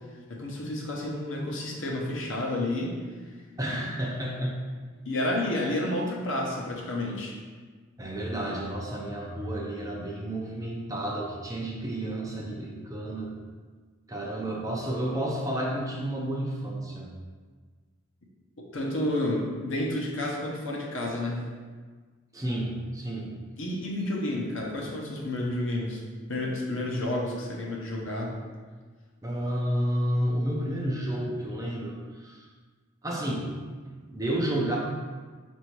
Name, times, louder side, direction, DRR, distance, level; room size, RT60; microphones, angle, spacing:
voice 1, 0.3-2.9 5.0-7.4 18.6-21.5 23.6-26.0 26.3-28.4, left 1 dB, 60° left, -2 dB, 0.8 m, -30 dB
voice 2, 3.6-4.6 8.0-13.3 14.1-17.1 22.3-23.3 29.2-32.4 33.0-33.5 34.1-34.8, right 1 dB, 15° right, -2 dB, 0.4 m, -31 dB
4.2 x 2.7 x 4.5 m, 1.5 s
head